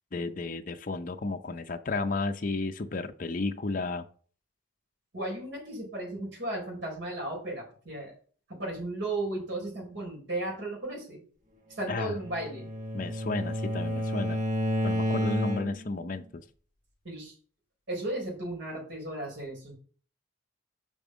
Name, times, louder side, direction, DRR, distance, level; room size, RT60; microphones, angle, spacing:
voice 1, 0.1-4.0 11.9-12.1 12.9-14.4 14.8-16.4, left 3 dB, 45° left, 6 dB, 0.6 m, -33 dB
voice 2, 5.1-8.1 8.5-11.2 11.7-12.7 17.0-17.3 17.9-19.7, right 1 dB, 75° right, -2 dB, 4.6 m, -35 dB
Bowed string instrument, 12.1-16.0, equal, 40° right, 1.6 m, -30 dB
5.9 x 5.3 x 6.3 m, 0.43 s
head